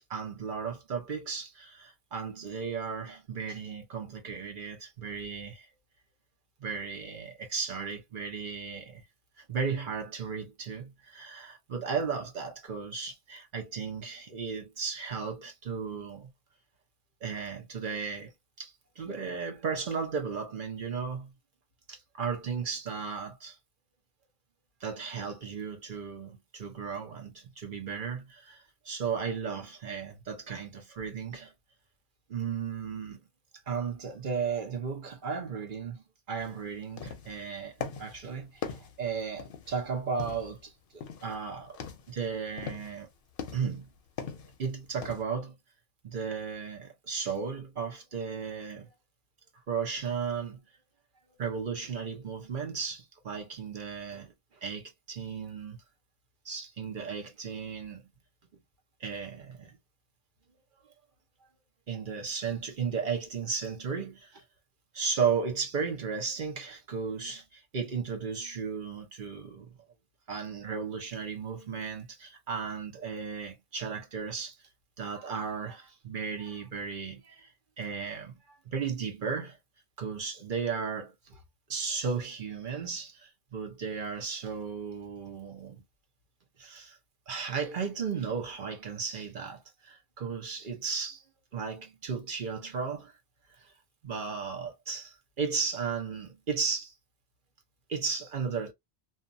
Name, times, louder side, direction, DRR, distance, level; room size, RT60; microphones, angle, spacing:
voice 1, 0.1-5.7 6.6-9.0 9.4-16.3 17.2-18.3 18.6-21.3 21.9-23.6 24.8-31.5 32.3-33.2 33.7-41.8 42.1-43.1 43.5-43.9 44.6-45.5 46.0-48.9 49.7-50.6 51.4-54.3 54.6-55.8 56.4-58.1 59.0-59.7 61.9-64.4 64.9-69.7 70.3-74.6 75.0-77.5 77.8-79.6 80.0-81.4 81.7-85.8 86.6-87.0 87.3-91.2 91.5-93.1 93.6-93.7 94.0-96.9 97.9-98.7, right 5 dB, 55° right, 1.0 m, -35 dB
sound 1, 36.4-36.5 36.8-37.4 37.8-38.2 38.6-39.8 40.2-40.6 41.0-41.4 41.7-42.1 42.6-43.0 43.4-43.8 44.2-44.6 45.0-45.2, left 6 dB, 60° left, 0.7 m, -40 dB
2.6 x 2.3 x 2.5 m
omnidirectional pair, 1.1 m